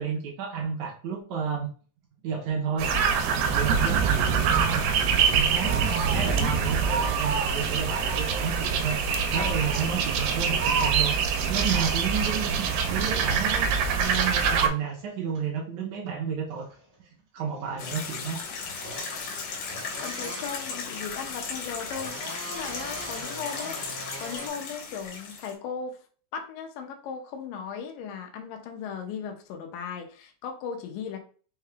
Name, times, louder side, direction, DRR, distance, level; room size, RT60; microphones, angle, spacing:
voice 1, 0.0-1.7 2.2-2.9 3.2-13.7 14.0-16.7 17.3-18.4, right 6 dB, 75° right, -1 dB, 1.9 m, -31 dB
sound 1, 2.8-14.7, right 6 dB, 90° right, 2.3 m, -24 dB
sound 2, 14.8-15.6 16.4-16.9 17.5-24.5, right 1 dB, 50° right, 1.2 m, -42 dB
sound 3, 17.8-25.5, left 5 dB, 70° left, 2.2 m, -36 dB
voice 2, 20.0-26.0 26.3-31.2, left 6 dB, 85° left, 3 dB, 2.3 m, -37 dB
5.5 x 2.3 x 3.2 m, 0.41 s
omnidirectional pair, 3.9 m